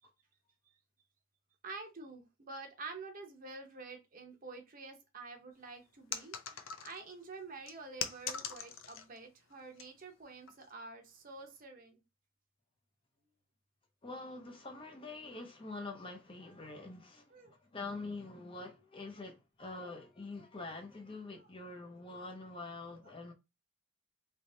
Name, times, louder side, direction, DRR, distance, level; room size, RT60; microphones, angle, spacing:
voice 1, 1.6-12.0 17.3-17.5 21.3-21.5 22.1-22.3, right 3 dB, 40° right, 0.8 m, -48 dB
sound 1, 6.1-7.1 7.7-9.2 9.5-9.9 10.5-10.7, left 7 dB, 70° left, 0.5 m, -41 dB
voice 2, 14.0-23.3, left 3 dB, 25° left, 0.6 m, -45 dB
3.4 x 3.0 x 2.7 m
head